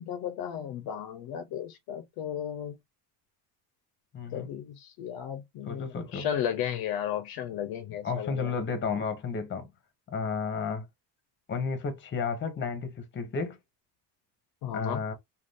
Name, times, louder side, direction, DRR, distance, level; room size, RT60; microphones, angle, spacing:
voice 1, 0.0-2.8 4.3-8.5 14.6-15.0, left 9 dB, 60° left, 0.5 m, -34 dB
voice 2, 4.1-4.5 5.6-6.3 8.0-9.7 10.1-10.9 11.5-13.6 14.7-15.1, left 5 dB, 25° left, 0.7 m, -32 dB
2.5 x 2.3 x 3.3 m
cardioid pair, 140°, 42 cm